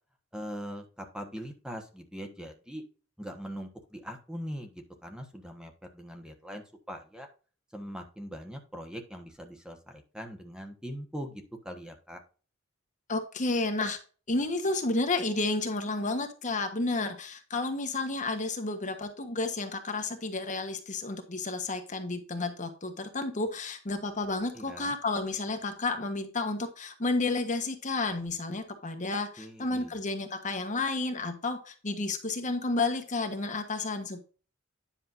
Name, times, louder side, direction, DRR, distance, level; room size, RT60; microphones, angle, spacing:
voice 1, 0.3-2.8 3.2-7.3 7.7-12.2 24.5-25.0 29.0-29.1 29.4-30.0, equal, 5° right, 4 dB, 1.3 m, -41 dB
voice 2, 13.1-14.0 14.3-34.2, left 3 dB, 40° left, 6 dB, 1.3 m, -31 dB
10.0 x 6.5 x 2.6 m, 0.36 s
head